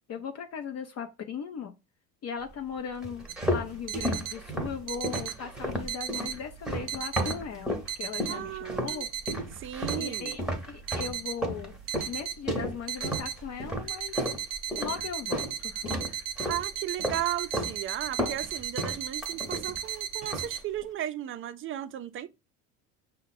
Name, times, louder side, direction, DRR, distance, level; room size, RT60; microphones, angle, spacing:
voice 1, 0.1-1.7 2.2-9.1 10.0-11.8 12.1-14.1 14.8-15.9, left 6 dB, 40° left, 0.6 m, -38 dB
sound 1, 3.0-7.9 8.2-9.0 9.3-15.5 15.8-16.7 17.0-17.8 18.0-19.9 20.2-20.6, equal, ahead, 1.0 m, -33 dB
sound 2, 3.3-20.6, right 9 dB, 55° right, 0.8 m, -36 dB
voice 2, 8.2-9.0 9.6-10.4 16.5-22.3, right 12 dB, 35° right, 0.4 m, -35 dB
5.3 x 2.2 x 4.0 m
supercardioid pair, 95°, 39 cm